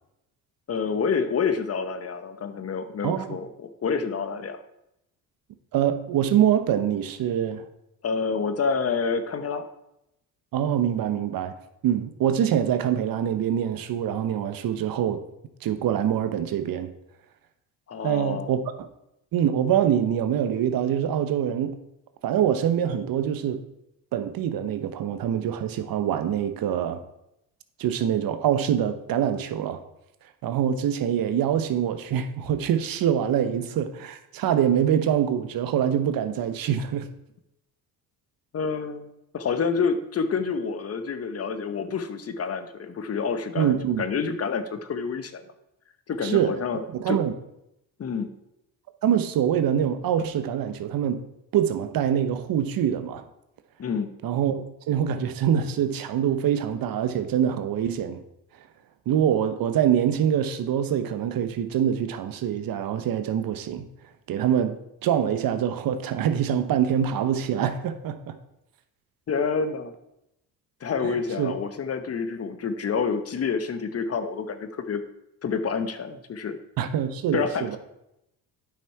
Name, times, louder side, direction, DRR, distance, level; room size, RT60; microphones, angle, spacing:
voice 1, 0.7-4.6 8.0-9.6 17.9-18.5 38.5-39.1 39.3-45.4 46.1-47.2 48.0-48.3 53.8-54.1 69.3-69.9 70.8-75.0 75.4-76.6 77.3-77.8, left 5 dB, 40° left, 0.9 m, -28 dB
voice 2, 3.0-3.4 5.7-7.6 10.5-11.5 11.8-15.2 15.6-16.9 18.0-18.9 19.3-21.8 22.2-23.6 24.1-27.0 27.8-29.8 30.4-37.0 43.6-44.0 46.2-46.5 46.9-47.3 49.0-51.2 51.5-53.2 54.2-58.2 59.1-63.9 64.3-68.4 71.4-71.5 76.8-77.8, right 9 dB, 60° right, 0.9 m, -24 dB
9.0 x 5.8 x 4.8 m
cardioid pair, 90°, 39 cm